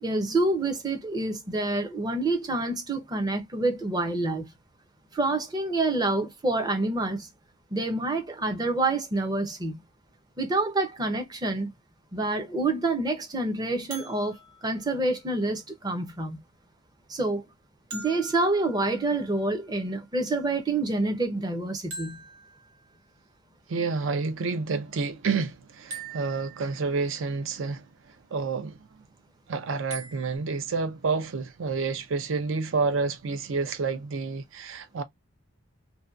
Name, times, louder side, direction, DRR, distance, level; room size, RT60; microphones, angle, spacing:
voice 1, 0.0-4.5 5.1-7.3 7.7-9.8 10.4-11.7 12.1-16.4 17.1-17.4 17.9-22.2, right 2 dB, 20° right, 0.5 m, -27 dB
sound 1, 13.9-15.9 17.9-19.7 21.9-23.3 25.9-27.2 29.9-30.4, right 4 dB, 90° right, 1.2 m, -44 dB
voice 2, 23.7-27.9 28.3-28.9 29.5-35.0, right 4 dB, 65° right, 0.5 m, -29 dB
2.6 x 2.2 x 2.3 m
head